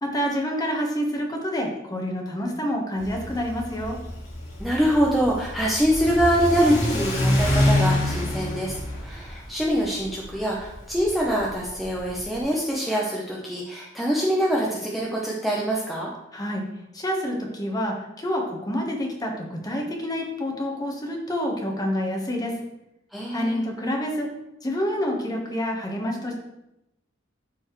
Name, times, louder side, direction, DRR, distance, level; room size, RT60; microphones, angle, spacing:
voice 1, 0.0-4.0 16.3-16.6 16.9-22.5 23.3-24.3 24.6-26.4, equal, 20° left, 0 dB, 1.3 m, -28 dB
Car / Accelerating revving vroom, 3.0-12.4, left 1 dB, 35° left, 2.1 m, -27 dB
voice 2, 4.6-16.1 23.1-23.6, equal, ahead, -5 dB, 0.8 m, -24 dB
12.0 x 4.4 x 3.2 m, 0.89 s
head